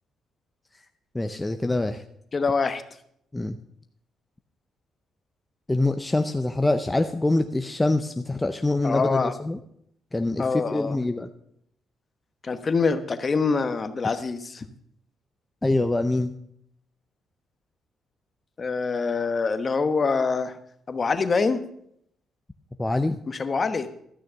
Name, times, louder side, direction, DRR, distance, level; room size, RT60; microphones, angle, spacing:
voice 1, 1.1-2.0 3.3-3.6 5.7-9.6 10.1-11.3 15.6-16.3 22.8-23.2, left 2 dB, 15° left, 7 dB, 0.6 m, -25 dB
voice 2, 2.3-2.8 8.8-9.3 10.4-11.0 12.4-14.6 18.6-20.6 20.9-21.6 23.3-23.9, left 4 dB, 35° left, 10 dB, 1.0 m, -25 dB
13.0 x 6.3 x 6.9 m, 0.73 s
cardioid pair, 90°, 0 cm